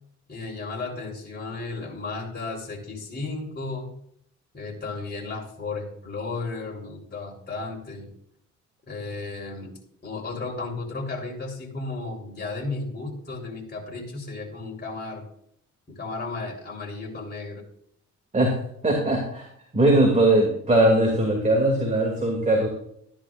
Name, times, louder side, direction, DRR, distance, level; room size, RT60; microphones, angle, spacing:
voice 1, 0.3-3.9 4.5-8.1 8.9-9.8 10.0-15.2 15.9-17.6, left 3 dB, 35° left, -1 dB, 3.8 m, -34 dB
voice 2, 18.8-19.5 19.7-22.7, right 1 dB, 25° right, 1 dB, 2.5 m, -20 dB
13.5 x 10.5 x 2.5 m, 0.70 s
cardioid pair, 90°, 30 cm